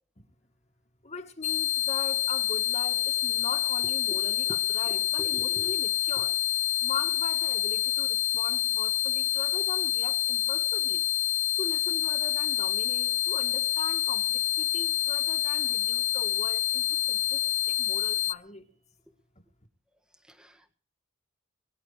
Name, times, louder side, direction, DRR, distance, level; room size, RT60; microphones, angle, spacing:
voice 1, 1.0-6.4 6.8-11.0 11.6-18.6, left 4 dB, 30° left, 1.8 m, -40 dB
sound 1, 1.4-18.3, left 13 dB, 60° left, 0.7 m, -27 dB
voice 2, 5.2-5.6 20.3-20.7, equal, 5° right, 1.6 m, -43 dB
23.0 x 11.0 x 4.9 m
head